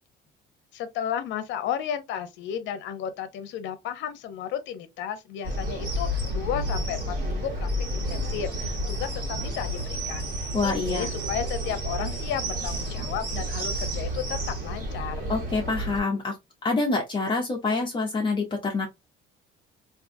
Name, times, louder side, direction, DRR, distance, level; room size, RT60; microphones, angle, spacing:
voice 1, 0.7-7.7 7.9-15.3, left 9 dB, 65° left, 0.7 m, -33 dB
sound 1, 5.4-16.0, equal, 45° right, 1.4 m, -30 dB
voice 2, 10.5-11.1 15.3-16.4 16.6-18.9, left 3 dB, 25° left, 0.7 m, -26 dB
3.7 x 2.5 x 2.6 m
cardioid pair, 155°, 20 cm